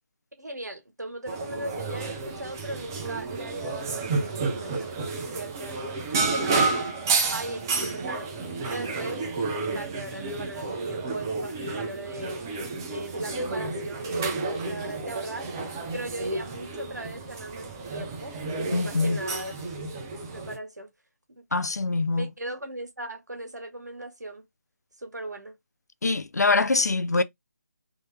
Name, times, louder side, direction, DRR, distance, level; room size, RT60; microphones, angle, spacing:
voice 1, 0.4-6.0 6.3-6.9 7.3-8.3 8.6-9.3 9.6-15.5 15.9-18.4 18.8-19.5 20.3-20.9 21.3-21.4 22.1-24.4 25.0-25.5, right 1 dB, 75° right, 1.5 m, -38 dB
sound 1, 1.3-20.6, right 3 dB, 10° right, 0.4 m, -31 dB
voice 2, 18.7-19.2 21.5-22.3 26.0-27.2, left 3 dB, 65° left, 0.5 m, -24 dB
3.6 x 2.6 x 3.1 m
figure-of-eight pair, 150°, 9 cm